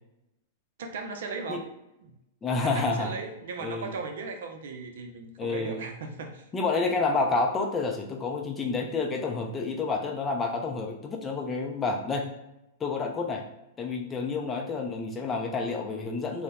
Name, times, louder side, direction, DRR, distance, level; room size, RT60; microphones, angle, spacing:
voice 1, 0.8-1.6 2.0-2.1 2.6-6.4, right 4 dB, 75° right, 5 dB, 0.4 m, -37 dB
voice 2, 2.4-3.1 3.6-3.9 5.4-5.8 6.5-12.3 12.8-13.4 13.8-16.4, left 3 dB, 20° left, 2 dB, 0.4 m, -29 dB
2.7 x 2.0 x 2.3 m, 0.89 s
hypercardioid pair, 115°, 0 cm